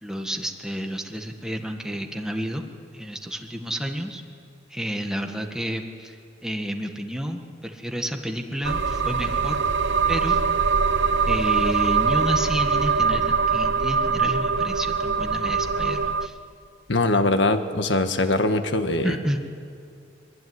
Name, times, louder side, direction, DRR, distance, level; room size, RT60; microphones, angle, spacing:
voice 1, 0.0-2.6 2.9-4.2 4.7-9.6 10.1-10.4 11.2-16.4 19.0-19.4, equal, 5° right, 3 dB, 1.8 m, -30 dB
sound 1, 8.6-16.3, right 5 dB, 80° right, 0.9 m, -23 dB
voice 2, 16.9-19.1, left 2 dB, 85° left, 8 dB, 1.6 m, -22 dB
23.5 x 23.0 x 9.8 m, 2.4 s
head